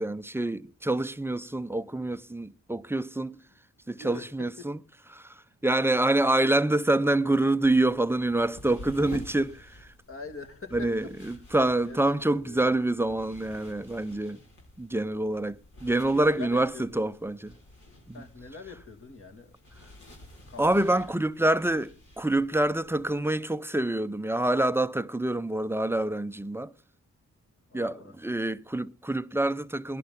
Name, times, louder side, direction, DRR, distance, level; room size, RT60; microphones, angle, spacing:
voice 1, 0.0-3.4 3.9-4.8 5.1-9.9 10.7-14.4 14.8-17.6 18.1-18.2 20.6-26.7 27.7-27.9 28.2-30.0, right 2 dB, 10° right, 0.6 m, -26 dB
voice 2, 3.8-4.7 10.1-11.4 11.8-12.7 15.8-17.0 18.1-19.6 20.5-21.0 21.4-21.5 27.7-28.1, left 5 dB, 45° left, 2.1 m, -44 dB
sound 1, 7.6-23.2, left 2 dB, 65° left, 4.5 m, -50 dB
19.0 x 11.0 x 3.8 m
cardioid pair, 60°, 31 cm